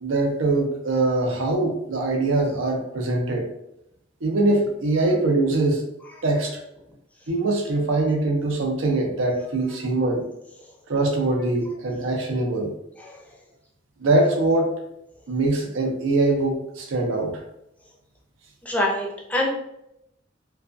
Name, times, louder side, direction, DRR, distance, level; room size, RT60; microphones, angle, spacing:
voice 1, 0.0-3.5 4.2-5.8 6.2-6.6 7.3-10.2 10.9-12.7 14.0-14.7 15.3-17.4, right 2 dB, 90° right, 2 dB, 0.6 m, -22 dB
voice 2, 18.6-19.5, left 1 dB, 10° left, -2 dB, 0.4 m, -25 dB
2.4 x 2.2 x 2.5 m, 0.81 s
head